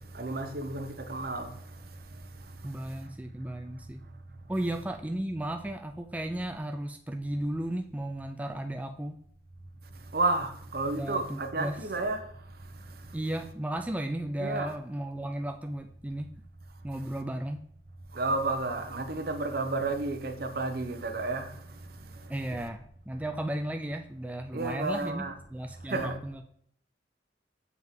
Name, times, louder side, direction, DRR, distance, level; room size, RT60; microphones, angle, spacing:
voice 1, 0.1-1.6 10.1-12.2 14.4-14.7 18.1-21.6 22.4-22.5 24.5-25.3 25.9-26.2, right 2 dB, 55° right, 0.9 m, -31 dB
voice 2, 2.6-4.0 4.5-9.2 10.9-11.8 13.1-16.3 16.8-17.6 22.3-25.3 25.5-26.4, right 1 dB, 10° right, 0.4 m, -34 dB
7.2 x 6.0 x 3.7 m
head